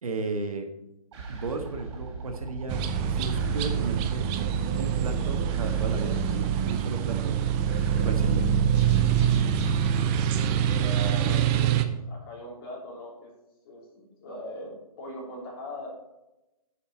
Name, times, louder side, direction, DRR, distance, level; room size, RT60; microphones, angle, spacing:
voice 1, 0.0-0.7 1.3-2.8 3.1-4.3 4.8-7.4 8.0-8.5, right 3 dB, 65° right, 5 dB, 1.5 m, -34 dB
sound 1, 1.1-9.8, right 3 dB, 45° right, 3.9 m, -38 dB
sound 2, 2.7-11.8, right 9 dB, 15° right, 0.4 m, -25 dB
voice 2, 10.2-13.3 13.6-15.9, left 1 dB, 35° left, -2 dB, 3.6 m, -41 dB
11.0 x 6.7 x 4.3 m, 0.95 s
figure-of-eight pair, 135°, 19 cm